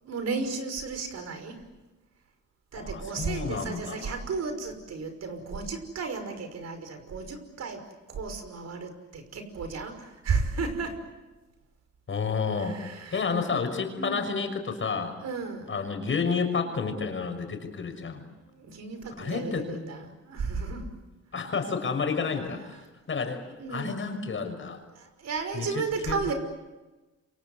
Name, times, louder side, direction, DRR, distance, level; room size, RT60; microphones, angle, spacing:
voice 1, 0.0-1.6 2.7-7.8 8.1-11.0 12.6-13.3 14.0-14.3 15.2-15.7 18.6-20.9 23.6-24.2 24.9-26.3, right 4 dB, 60° right, 7 dB, 5.7 m, -33 dB
voice 2, 2.7-4.2 12.1-12.8 13.1-15.1 15.7-18.2 19.2-19.7 21.3-22.8 23.1-24.8 25.5-26.3, left 5 dB, 40° left, 6 dB, 6.1 m, -30 dB
28.0 x 25.5 x 8.1 m, 1.1 s
cardioid pair, 90°, 30 cm